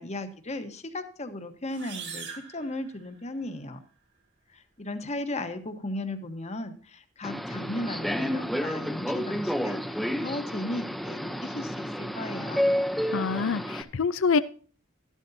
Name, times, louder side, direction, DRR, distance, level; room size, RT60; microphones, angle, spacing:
voice 1, 0.0-3.8 4.5-12.7, left 1 dB, 30° left, 8 dB, 1.2 m, -36 dB
sound 1, 1.7-3.5, right 6 dB, 55° right, 2.0 m, -42 dB
Subway metro underground, 7.2-13.8, equal, ahead, 0.7 m, -30 dB
voice 2, 13.1-14.4, left 5 dB, 70° left, 15 dB, 0.5 m, -25 dB
13.5 x 12.0 x 2.8 m, 0.41 s
head